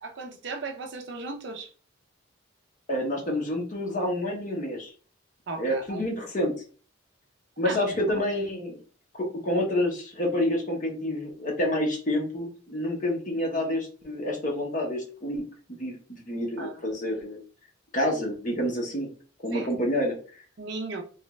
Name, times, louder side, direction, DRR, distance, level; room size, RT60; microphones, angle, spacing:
voice 1, 0.0-1.7 5.5-6.0 7.6-8.2 16.6-16.8 19.5-19.7 20.6-21.0, right 3 dB, 55° right, 0.5 m, -36 dB
voice 2, 2.9-4.9 5.6-6.5 7.6-8.8 9.1-15.4 15.8-17.4 17.9-19.1 19.4-20.2, left 1 dB, 40° left, 0.8 m, -28 dB
3.1 x 2.3 x 3.1 m
head